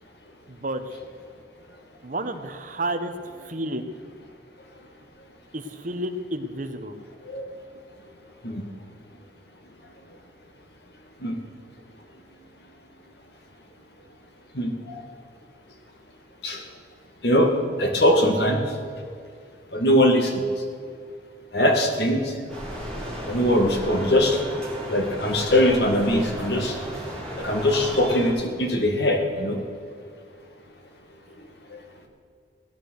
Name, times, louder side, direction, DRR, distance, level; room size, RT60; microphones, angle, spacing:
voice 1, 0.5-1.0 2.0-3.9 5.5-6.9, right 1 dB, 45° right, 7 dB, 1.1 m, -31 dB
voice 2, 14.5-15.0 16.4-16.6 17.2-17.5 17.8-18.6 19.7-20.4 21.5-22.3 23.2-24.4 24.9-27.0 27.4-29.6 31.7-31.8, left 1 dB, 60° left, 3 dB, 2.1 m, -21 dB
sound 1, 22.5-28.3, equal, 5° left, 3.5 m, -34 dB
17.5 x 10.5 x 6.6 m, 2.2 s
head